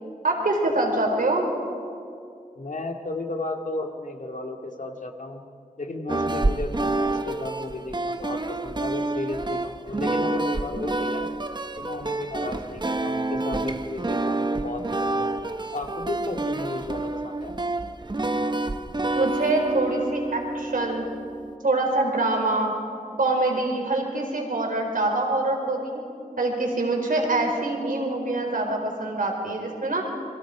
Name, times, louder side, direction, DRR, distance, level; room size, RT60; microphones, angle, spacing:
voice 1, 0.2-1.5 19.1-21.1 21.6-22.7 23.2-26.0 26.4-30.1, right 2 dB, 70° right, 2 dB, 4.2 m, -25 dB
voice 2, 2.6-5.4 5.8-11.3 11.8-15.3 15.7-17.6, left 2 dB, 60° left, 3 dB, 2.2 m, -34 dB
sound 1, 6.1-21.5, right 2 dB, 30° right, 1.0 m, -28 dB
29.0 x 22.0 x 5.1 m, 2.4 s
wide cardioid pair, 55°, 15 cm